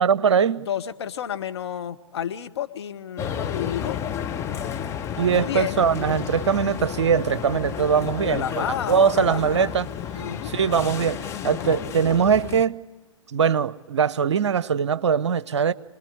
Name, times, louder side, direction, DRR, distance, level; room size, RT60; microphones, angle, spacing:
voice 1, 0.0-0.7 5.2-9.9 10.4-12.8 13.3-15.7, right 7 dB, 55° right, 0.8 m, -21 dB
voice 2, 0.7-4.0 5.3-5.8 8.3-9.8 10.1-10.5 11.6-12.0, left 9 dB, 55° left, 1.3 m, -31 dB
sound 1, 3.2-12.6, left 8 dB, 15° left, 0.8 m, -32 dB
27.0 x 20.5 x 9.9 m
figure-of-eight pair, 115°, 17 cm